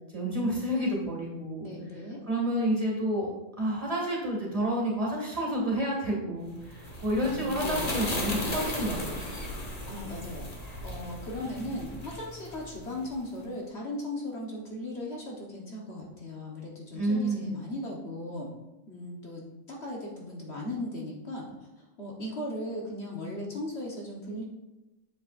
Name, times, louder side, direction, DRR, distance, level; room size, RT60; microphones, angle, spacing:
voice 1, 0.1-1.7 2.3-3.3 3.6-9.2 16.9-17.5, right 1 dB, 25° right, -3 dB, 2.2 m, -29 dB
voice 2, 1.6-2.2 7.2-7.9 8.4-8.6 9.9-10.5 10.8-18.5 18.9-19.4 19.7-21.5 21.8-24.4, left 1 dB, 55° left, -3 dB, 1.5 m, -37 dB
sound 1, 6.6-13.2, left 1 dB, 30° left, 1.3 m, -36 dB
8.7 x 7.3 x 2.6 m, 0.99 s
omnidirectional pair, 1.4 m